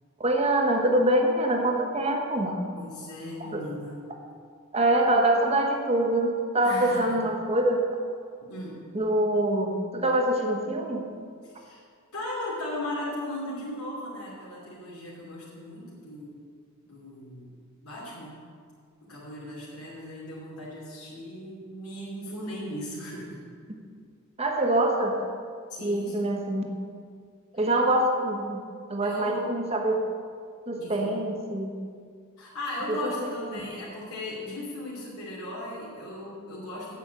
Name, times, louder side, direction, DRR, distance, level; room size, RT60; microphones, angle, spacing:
voice 1, 0.2-2.6 3.4-3.6 4.7-7.8 8.9-11.1 24.4-25.2 25.8-26.7 27.5-28.6 28.9-30.0 30.7-31.8 32.9-33.1, right 1 dB, 30° right, 1 dB, 1.4 m, -25 dB
voice 2, 2.7-4.0 6.6-7.1 8.5-8.8 11.4-11.8 12.1-16.4 16.8-17.5 17.8-18.4 19.0-23.4 25.7-26.3 27.5-27.7 29.0-29.4 30.8-31.1 32.4-37.0, left 1 dB, 90° left, -7 dB, 2.8 m, -37 dB
8.4 x 7.5 x 8.1 m, 2.1 s
head